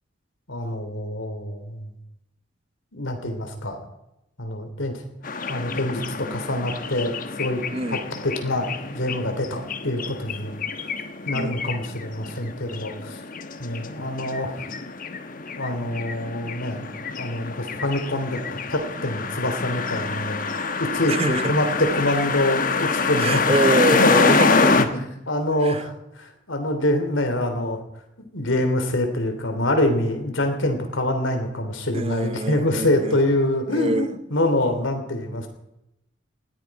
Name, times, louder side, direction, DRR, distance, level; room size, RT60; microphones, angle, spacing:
voice 1, 0.5-1.9 2.9-3.8 4.4-4.9 5.5-7.6 7.9-10.5 11.3-13.2 13.6-14.7 15.5-16.9 17.2-18.4 18.7-23.4 24.0-24.2 24.8-27.8 28.3-35.5, left 1 dB, 80° left, 6 dB, 3.1 m, -25 dB
sound 1, 5.2-24.9, left 4 dB, 45° left, 1.2 m, -26 dB
voice 2, 21.1-21.5 23.2-24.8 25.6-25.8 31.9-33.2 33.7-34.2, right 2 dB, 30° right, 14 dB, 0.6 m, -25 dB
19.5 x 14.5 x 4.8 m, 0.88 s
head